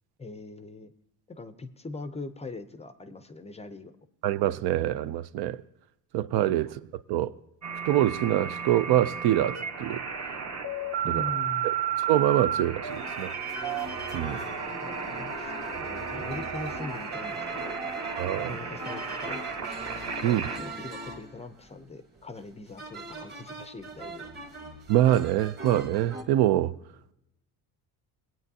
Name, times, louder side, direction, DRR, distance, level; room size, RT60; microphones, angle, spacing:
voice 1, 0.2-0.9 1.3-3.9 6.6-6.7 11.0-11.7 14.2-17.9 18.4-19.5 20.2-24.3, left 3 dB, 15° left, 0.4 m, -42 dB
voice 2, 4.2-5.6 6.1-6.8 7.1-7.3 7.9-10.0 11.0-11.2 11.6-13.3 14.1-14.4 18.2-18.6 20.2-20.5 24.9-26.7, right 13 dB, 65° right, 0.5 m, -25 dB
sound 1, 7.6-20.6, right 7 dB, 40° right, 1.1 m, -33 dB
sound 2, 12.9-26.2, right 2 dB, 25° right, 1.4 m, -40 dB
20.5 x 8.9 x 2.7 m
cardioid pair, 130°, 41 cm